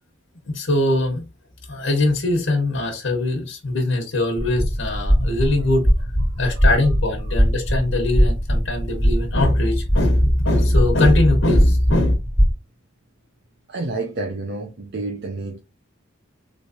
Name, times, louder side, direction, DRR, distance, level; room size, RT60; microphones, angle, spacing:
voice 1, 0.5-1.2 1.7-5.9 6.4-12.1, left 1 dB, 75° left, 1.0 m, -21 dB
sound 1, 4.4-12.5, equal, 15° right, 2.1 m, -21 dB
voice 2, 6.3-6.8 7.2-7.3 13.7-15.6, right 3 dB, 55° right, 0.6 m, -30 dB
3.3 x 3.2 x 2.7 m
head